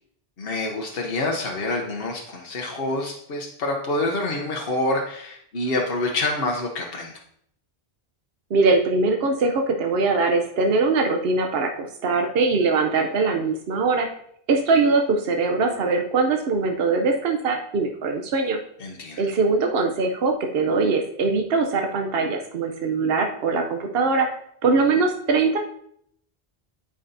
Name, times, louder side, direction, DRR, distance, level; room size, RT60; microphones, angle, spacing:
voice 1, 0.4-7.1 18.8-19.3, left 2 dB, 70° left, 1 dB, 1.1 m, -27 dB
voice 2, 8.5-14.1 14.5-18.6 19.2-24.3 24.6-25.6, right 3 dB, 70° right, 4 dB, 1.0 m, -22 dB
13.0 x 5.1 x 2.7 m, 0.70 s
omnidirectional pair, 1.0 m